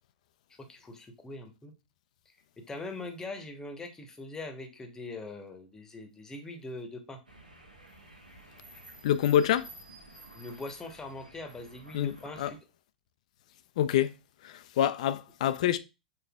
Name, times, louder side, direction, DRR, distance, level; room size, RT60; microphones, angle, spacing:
voice 1, 0.6-1.7 2.6-7.2 10.3-12.6, left 2 dB, 15° left, 1.0 m, -42 dB
sound 1, 7.3-12.6, right 1 dB, 85° right, 1.3 m, -52 dB
voice 2, 9.0-9.7 11.9-12.5 13.8-14.1 14.4-15.8, left 10 dB, 55° left, 0.5 m, -26 dB
6.7 x 3.2 x 2.3 m
figure-of-eight pair, 100°, 4 cm